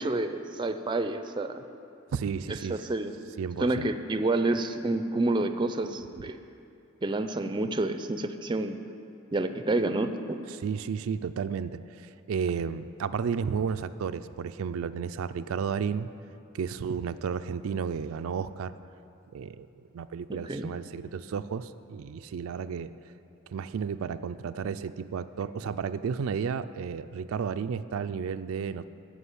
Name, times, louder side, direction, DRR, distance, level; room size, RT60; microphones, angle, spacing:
voice 1, 0.0-1.6 2.5-3.1 3.6-6.4 7.0-8.8 9.3-10.4 20.3-20.7, right 2 dB, 20° right, 9 dB, 0.4 m, -29 dB
voice 2, 2.1-2.8 3.4-3.9 10.6-16.1 16.5-18.7 19.3-19.7 19.9-22.9 23.5-28.8, right 6 dB, 85° right, 11 dB, 0.4 m, -32 dB
13.5 x 5.1 x 8.4 m, 2.7 s
head